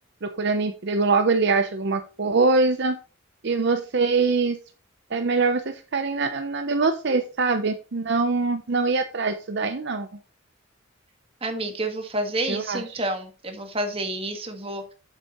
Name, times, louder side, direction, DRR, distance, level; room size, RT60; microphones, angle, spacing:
voice 1, 0.2-3.0 3.4-4.6 5.1-10.1 12.5-13.0, right 4 dB, 55° right, 8 dB, 0.7 m, -23 dB
voice 2, 11.4-14.9, right 1 dB, 30° right, 5 dB, 1.6 m, -29 dB
8.2 x 8.0 x 3.0 m, 0.34 s
head